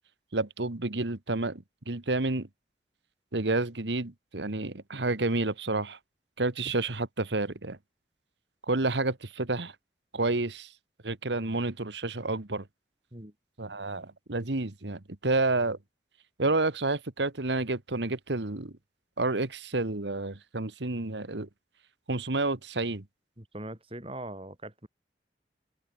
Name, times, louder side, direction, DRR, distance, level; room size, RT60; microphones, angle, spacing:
voice 1, 0.3-2.5 3.3-6.0 6.4-7.8 8.7-9.7 10.1-10.7 11.0-12.7 13.6-15.8 16.4-18.7 19.2-21.5 22.1-23.0, right 2 dB, 80° right, 1.6 m, -30 dB
voice 2, 23.4-24.9, right 1 dB, 30° right, 4.1 m, -41 dB
open air
head